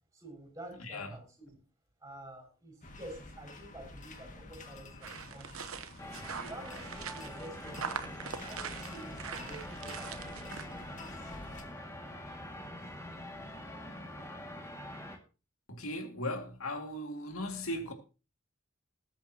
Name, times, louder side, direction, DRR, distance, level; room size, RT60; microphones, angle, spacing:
voice 1, 0.1-1.6 2.0-6.1 6.4-11.3, right 1 dB, 15° right, 5.9 m, -50 dB
voice 2, 0.8-1.1 15.7-17.9, left 1 dB, 80° left, 2.2 m, -37 dB
sound 1, 2.8-11.6, left 2 dB, 40° left, 2.0 m, -50 dB
sound 2, 5.0-10.7, right 6 dB, 75° right, 1.0 m, -43 dB
sound 3, 6.0-15.2, left 1 dB, 15° left, 2.1 m, -45 dB
20.5 x 8.8 x 2.9 m
head